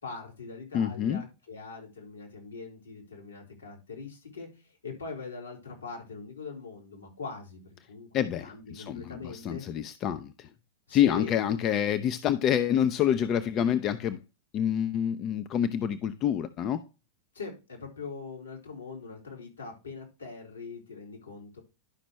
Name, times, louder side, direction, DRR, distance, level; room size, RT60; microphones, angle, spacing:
voice 1, 0.0-7.6 7.9-9.6 10.9-11.3 17.3-21.6, left 4 dB, 75° left, 4.0 m, -42 dB
voice 2, 0.7-1.2 8.1-10.5 10.9-14.2 14.5-16.8, left 9 dB, 35° left, 0.6 m, -27 dB
11.5 x 6.0 x 3.1 m
figure-of-eight pair, 90°, 0 cm